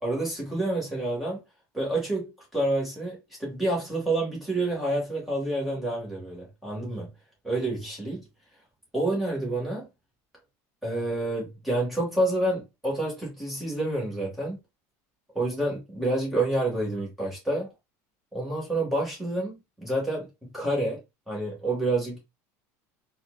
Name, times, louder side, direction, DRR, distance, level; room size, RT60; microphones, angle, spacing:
voice 1, 0.0-1.4 1.7-7.1 7.4-8.2 8.9-9.9 10.8-14.6 15.3-17.7 18.3-20.3 20.5-21.0 21.3-22.2, right 1 dB, ahead, 1.7 m, -28 dB
4.2 x 2.5 x 2.3 m
cardioid pair, 165°, 8 cm